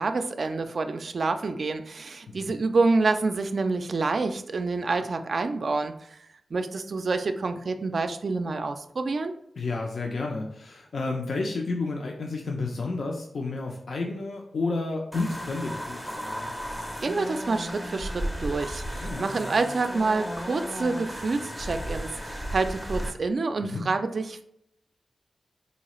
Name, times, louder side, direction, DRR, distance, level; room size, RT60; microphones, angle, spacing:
voice 1, 0.0-6.2 6.5-9.3 17.0-24.4, right 3 dB, 55° right, 8 dB, 0.3 m, -27 dB
voice 2, 9.6-16.5 19.0-19.3 23.6-23.9, left 3 dB, 65° left, 1 dB, 0.4 m, -31 dB
sound 1, 15.1-23.1, equal, 10° left, 0.5 m, -34 dB
4.0 x 2.3 x 2.9 m, 0.73 s
wide cardioid pair, 100°, 0 cm